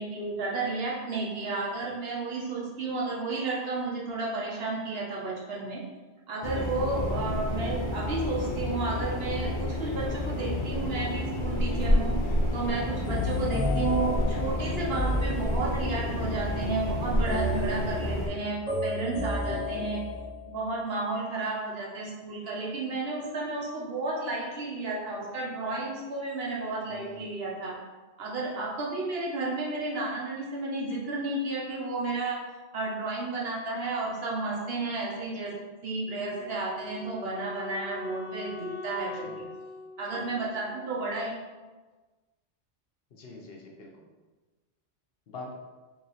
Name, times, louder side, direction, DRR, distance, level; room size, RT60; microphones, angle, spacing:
voice 1, 0.0-5.8 6.3-12.1 12.5-20.0 20.5-27.7 28.2-32.4 32.7-35.5 35.8-39.5 40.0-41.3, right 3 dB, 65° right, -4 dB, 1.0 m, -32 dB
sound 1, 6.4-18.3, left 1 dB, 40° left, 0.5 m, -30 dB
sound 2, 13.0-16.0 17.3-20.5, left 1 dB, ahead, 0.9 m, -32 dB
voice 2, 19.5-20.0 26.9-27.3 39.2-39.4 40.4-40.5 43.1-43.9 45.3-45.5, left 3 dB, 65° left, 0 dB, 0.8 m, -44 dB
Wind instrument woodwind instrument, 36.0-41.1, left 3 dB, 30° right, 1.0 m, -42 dB
3.0 x 2.9 x 4.0 m, 1.3 s
omnidirectional pair, 1.1 m